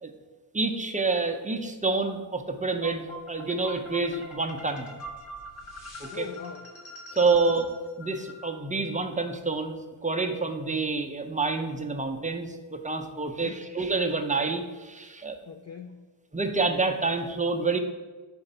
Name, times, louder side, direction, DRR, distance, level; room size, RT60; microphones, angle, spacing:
voice 1, 0.5-4.9 6.0-6.2 7.1-7.7 8.0-15.4 16.3-17.8, right 3 dB, 15° right, 5 dB, 0.5 m, -28 dB
sound 1, 2.8-8.9, equal, 70° left, 1.3 m, -43 dB
voice 2, 6.1-6.7 7.2-7.5 13.2-13.6 14.5-14.6 15.5-16.1, left 5 dB, 35° left, 5 dB, 0.4 m, -42 dB
4.9 x 4.4 x 5.4 m, 1.3 s
cardioid pair, 100°, 50 cm